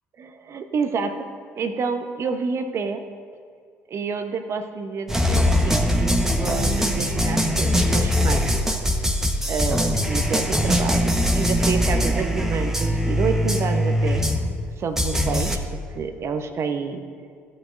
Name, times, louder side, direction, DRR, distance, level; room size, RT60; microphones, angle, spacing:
voice 1, 0.2-1.3 1.5-3.0 3.9-9.1 9.5-14.2 14.8-15.6 15.9-17.0, right 5 dB, 45° right, 8 dB, 0.9 m, -29 dB
sound 1, 5.1-14.6 15.0-15.6, equal, 5° right, 1.2 m, -21 dB
16.5 x 8.8 x 2.7 m, 2.2 s
figure-of-eight pair, 55°, 6 cm